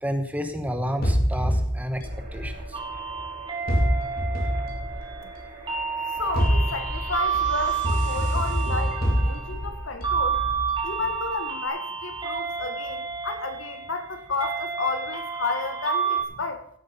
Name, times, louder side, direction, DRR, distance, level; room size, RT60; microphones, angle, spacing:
voice 1, 0.0-2.0 2.3-2.8, equal, 10° right, 1.2 m, -30 dB
sound 1, 1.0-3.2 3.7-5.5 6.2-11.3, equal, 50° left, 2.9 m, -26 dB
sound 2, 2.0-10.7, right 3 dB, 40° right, 2.8 m, -45 dB
sound 3, 2.7-16.2, right 6 dB, 25° right, 2.0 m, -30 dB
voice 2, 6.2-10.4 10.8-16.7, left 3 dB, 80° left, 1.8 m, -32 dB
16.0 x 8.3 x 5.5 m
head